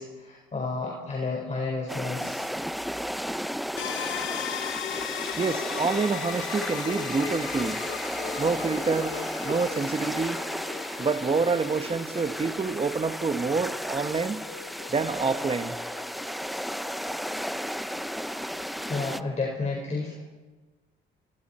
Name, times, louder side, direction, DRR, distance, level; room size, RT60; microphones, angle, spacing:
voice 1, 0.0-2.4 18.9-20.2, left 3 dB, 35° left, 5.0 m, -31 dB
sound 1, 1.9-19.2, equal, ahead, 0.6 m, -34 dB
sound 2, 3.8-19.3, left 10 dB, 70° left, 1.0 m, -39 dB
voice 2, 5.4-7.8 8.4-9.2 9.4-10.4 11.0-14.4 14.9-15.8, right 4 dB, 30° right, 1.5 m, -27 dB
27.5 x 25.0 x 4.5 m
cardioid pair, 90°, 20 cm